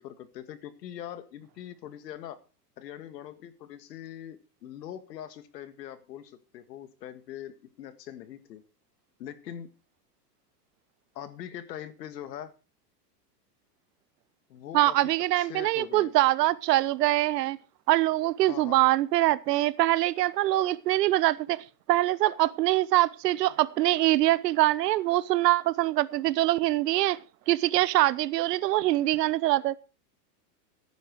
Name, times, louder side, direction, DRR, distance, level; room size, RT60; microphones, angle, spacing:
voice 1, 0.0-2.4 2.8-8.6 9.2-9.7 11.2-12.5 14.5-16.1 18.5-18.9, left 10 dB, 85° left, 12 dB, 1.9 m, -42 dB
voice 2, 14.7-17.6 17.9-29.8, right 16 dB, 75° right, 19 dB, 1.0 m, -24 dB
15.0 x 9.5 x 4.7 m, 0.32 s
supercardioid pair, 150°, 48 cm